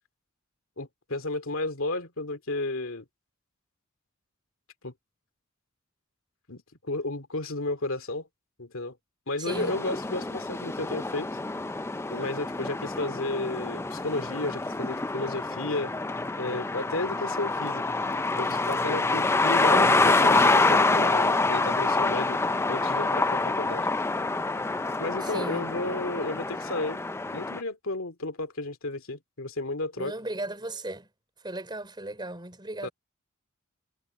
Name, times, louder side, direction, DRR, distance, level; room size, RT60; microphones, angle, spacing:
voice 1, 0.8-3.0 4.8-4.9 6.5-8.3 8.6-9.0 9.3-11.3 12.1-15.9 16.4-17.8 18.4-22.4 22.7-23.9 25.0-27.0 27.3-30.1 32.8-32.9, left 2 dB, 65° left, 2.5 m, -33 dB
voice 2, 9.4-9.8 25.2-25.7 30.0-31.1 31.4-32.9, right 2 dB, 20° right, 4.2 m, -36 dB
sound 1, 9.5-27.6, left 3 dB, 10° left, 0.4 m, -26 dB
head